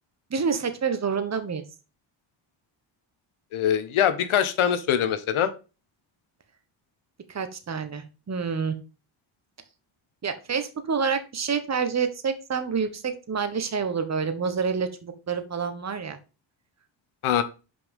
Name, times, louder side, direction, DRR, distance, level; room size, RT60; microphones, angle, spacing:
voice 1, 0.3-1.6 7.3-8.8 10.2-16.2, right 6 dB, 35° right, 9 dB, 1.3 m, -28 dB
voice 2, 3.5-5.5 17.2-17.4, left 9 dB, 80° left, 11 dB, 1.2 m, -23 dB
5.7 x 5.2 x 5.4 m, 0.32 s
cardioid pair, 75°, 48 cm